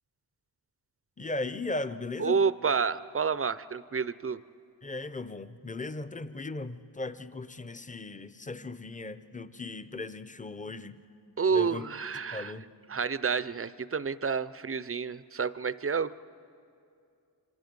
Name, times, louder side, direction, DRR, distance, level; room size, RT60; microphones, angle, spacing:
voice 1, 1.2-2.4 4.8-11.0 11.5-11.8 12.3-12.7, left 2 dB, 20° left, 12 dB, 0.6 m, -37 dB
voice 2, 2.2-4.4 11.4-12.5 12.9-16.2, right 5 dB, 35° right, 16 dB, 0.4 m, -29 dB
26.5 x 25.5 x 5.3 m, 2.5 s
wide cardioid pair, 95°, 41 cm